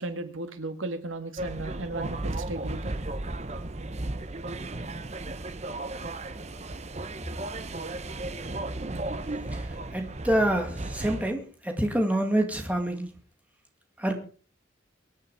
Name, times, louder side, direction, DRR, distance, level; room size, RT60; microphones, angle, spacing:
voice 1, 0.0-2.9, right 2 dB, 90° right, 8 dB, 2.1 m, -35 dB
sound 1, 1.4-11.3, right 2 dB, 35° right, 0.9 m, -35 dB
voice 2, 9.5-13.1 14.0-14.1, right 1 dB, 10° right, 4 dB, 2.4 m, -27 dB
24.0 x 9.1 x 4.9 m, 0.40 s
head